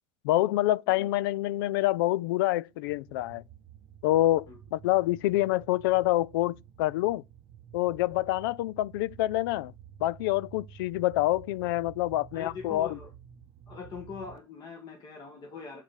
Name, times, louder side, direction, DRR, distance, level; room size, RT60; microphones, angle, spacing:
voice 1, 0.2-3.4 4.0-4.5 4.7-7.2 7.7-9.7 10.0-13.0, left 16 dB, 80° left, 0.4 m, -26 dB
sound 1, 2.7-14.4, right 9 dB, 45° right, 0.7 m, -51 dB
voice 2, 12.3-13.1 13.7-15.8, left 5 dB, 35° left, 1.4 m, -42 dB
7.5 x 5.4 x 4.9 m
supercardioid pair, 135°, 12 cm